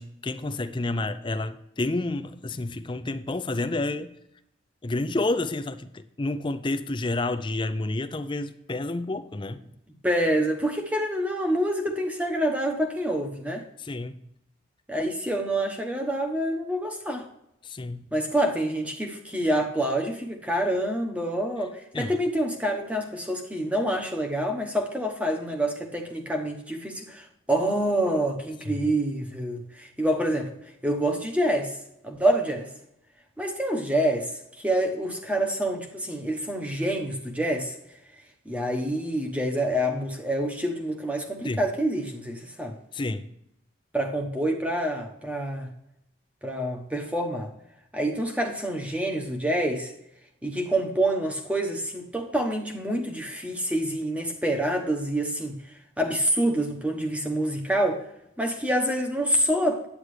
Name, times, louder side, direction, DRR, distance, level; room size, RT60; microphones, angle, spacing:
voice 1, 0.0-4.1 4.8-5.9 6.2-9.6 13.8-14.2 17.6-18.1 21.9-22.2 28.7-28.8 41.4-41.6 42.9-43.3, left 2 dB, 25° left, 11 dB, 0.5 m, -29 dB
voice 2, 10.0-13.6 14.9-17.3 18.1-30.5 30.8-31.8 32.0-32.7 33.4-34.3 34.6-37.7 38.4-42.8 43.9-45.7 46.4-47.5 47.9-49.9 50.4-55.6 56.0-58.0 58.4-59.9, right 1 dB, 5° right, 3 dB, 1.0 m, -27 dB
9.8 x 8.9 x 3.2 m, 0.81 s
head